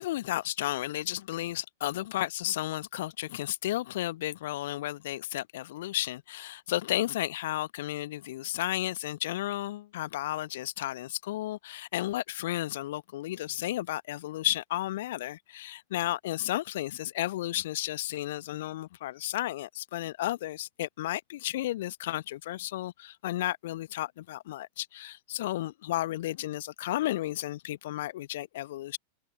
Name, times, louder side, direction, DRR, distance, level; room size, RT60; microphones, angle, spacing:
voice 1, 0.0-29.0, left 15 dB, 55° left, 0.9 m, -33 dB
figure-of-eight pair, 90°, 0 cm